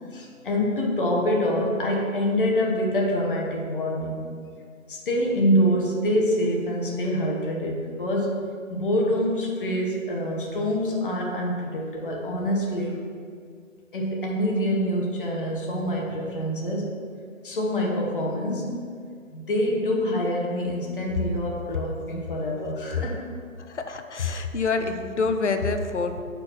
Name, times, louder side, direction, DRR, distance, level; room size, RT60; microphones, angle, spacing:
voice 1, 0.1-4.2 4.9-8.4 8.7-13.0 13.9-16.9 17.4-18.8 19.3-23.2, equal, 40° left, -1 dB, 1.4 m, -25 dB
voice 2, 23.7-26.2, left 4 dB, 60° left, 7 dB, 0.8 m, -26 dB
6.2 x 4.3 x 6.0 m, 2.1 s
hypercardioid pair, 165°, 40 cm